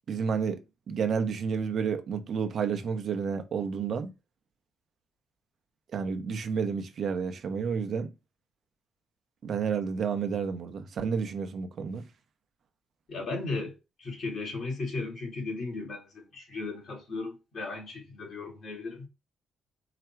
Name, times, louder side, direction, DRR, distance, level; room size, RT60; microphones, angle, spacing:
voice 1, 0.1-4.1 5.9-8.1 9.4-12.0, right 6 dB, 60° right, 0.9 m, -30 dB
voice 2, 13.1-19.1, left 3 dB, 55° left, 2.8 m, -36 dB
4.9 x 2.3 x 4.5 m
cardioid pair, 90°, 0 cm